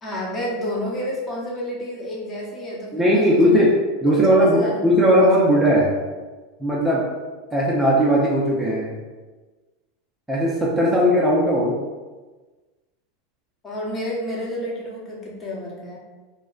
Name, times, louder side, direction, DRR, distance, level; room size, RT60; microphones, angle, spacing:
voice 1, 0.0-3.6 4.1-4.8 5.5-5.6 13.6-16.0, equal, 25° left, -4 dB, 0.9 m, -30 dB
voice 2, 2.9-3.7 4.0-5.9 6.6-7.1 7.5-8.9 10.3-11.8, equal, 10° right, -6 dB, 0.5 m, -18 dB
2.3 x 2.1 x 3.7 m, 1.3 s
hypercardioid pair, 110°, 0 cm